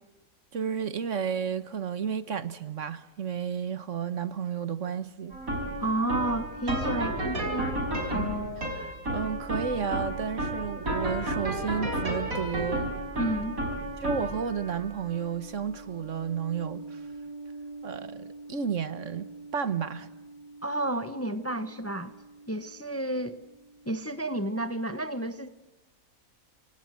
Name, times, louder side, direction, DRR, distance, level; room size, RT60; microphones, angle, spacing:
voice 1, 0.5-5.4 8.6-13.0 14.0-17.0 17.8-20.1, right 7 dB, 65° right, 1.5 m, -32 dB
sound 1, 5.3-22.5, right 1 dB, 85° right, 5.4 m, -34 dB
voice 2, 5.8-7.8 13.2-13.6 20.6-22.1 22.5-23.4 23.9-25.5, right 1 dB, 10° left, 1.0 m, -31 dB
30.0 x 26.5 x 7.6 m
omnidirectional pair, 1.4 m